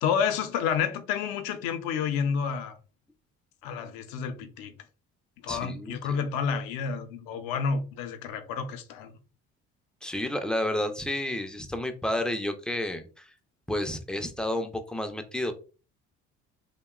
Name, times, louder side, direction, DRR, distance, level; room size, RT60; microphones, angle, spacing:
voice 1, 0.0-2.8 3.6-4.7 5.4-9.1, left 6 dB, 75° left, 0.5 m, -30 dB
voice 2, 5.5-6.0 10.0-13.3 13.7-15.5, left 1 dB, 5° left, 0.3 m, -31 dB
2.8 x 2.1 x 2.3 m
hypercardioid pair, 65°, 35 cm